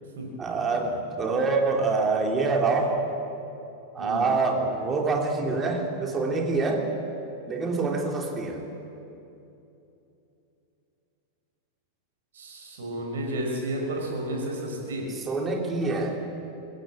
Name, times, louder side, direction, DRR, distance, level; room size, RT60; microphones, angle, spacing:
voice 1, 0.4-3.0 3.9-6.9 7.5-8.6 15.1-16.2, right 3 dB, 20° right, 2 dB, 3.1 m, -26 dB
voice 2, 12.3-15.1, right 1 dB, 65° right, 0 dB, 5.9 m, -32 dB
23.5 x 15.5 x 8.7 m, 2.9 s
figure-of-eight pair, 90°, 0 cm